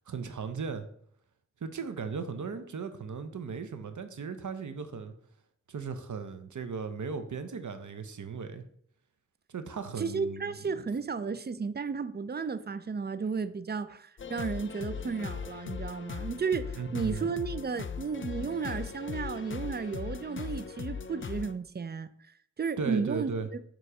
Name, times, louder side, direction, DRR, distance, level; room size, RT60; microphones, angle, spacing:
voice 1, 0.1-0.9 1.6-5.1 5.7-8.6 9.5-10.6 16.8-17.3 22.8-23.5, right 5 dB, 75° right, 0.7 m, -36 dB
voice 2, 10.0-22.1 22.6-23.6, right 5 dB, 35° right, 0.4 m, -33 dB
sound 1, 14.2-21.5, left 6 dB, 40° left, 0.4 m, -39 dB
6.9 x 3.1 x 4.9 m
wide cardioid pair, 60°, 30 cm